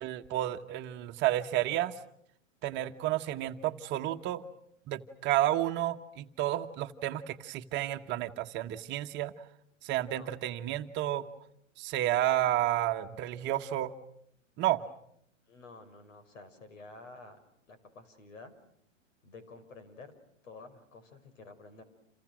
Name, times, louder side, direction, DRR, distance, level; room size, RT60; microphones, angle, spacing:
voice 1, 0.0-1.9 2.6-4.4 4.9-9.3 9.8-11.3 11.8-13.9 14.6-14.8, right 13 dB, 30° right, 7 dB, 1.3 m, -31 dB
voice 2, 15.5-17.4 17.7-18.5 19.2-20.1 20.4-21.8, left 3 dB, 80° left, 10 dB, 6.0 m, -51 dB
29.5 x 28.5 x 6.3 m, 0.71 s
hypercardioid pair, 140°, 38 cm